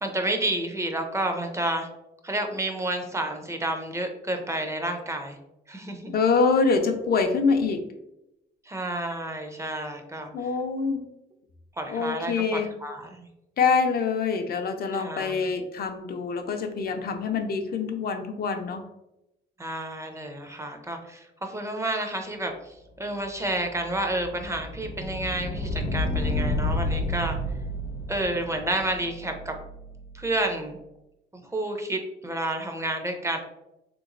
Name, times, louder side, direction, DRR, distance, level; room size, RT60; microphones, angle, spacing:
voice 1, 0.0-1.9 2.2-5.4 5.7-6.1 8.7-10.3 11.8-13.3 14.9-15.5 19.6-27.4 28.1-29.5 30.1-30.8 31.4-33.4, right 1 dB, 15° right, 4 dB, 0.6 m, -30 dB
voice 2, 6.1-7.9 10.3-11.1 11.9-12.8 13.6-18.9, left 4 dB, 50° left, 5 dB, 0.5 m, -25 dB
sound 1, 23.5-30.4, left 1 dB, 75° left, 0.8 m, -31 dB
3.4 x 3.0 x 2.5 m, 0.89 s
cardioid pair, 90°, 20 cm